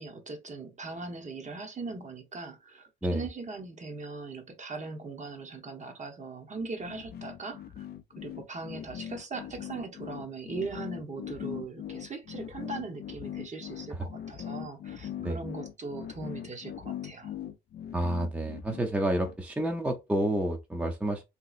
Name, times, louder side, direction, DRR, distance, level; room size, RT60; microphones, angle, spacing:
voice 1, 0.0-7.9 8.2-17.4, right 3 dB, 35° right, 0.8 m, -40 dB
sound 1, 6.8-19.4, left 10 dB, 55° left, 0.5 m, -41 dB
voice 2, 17.9-21.2, right 1 dB, 5° right, 0.5 m, -29 dB
2.9 x 2.8 x 2.4 m
cardioid pair, 90°, 20 cm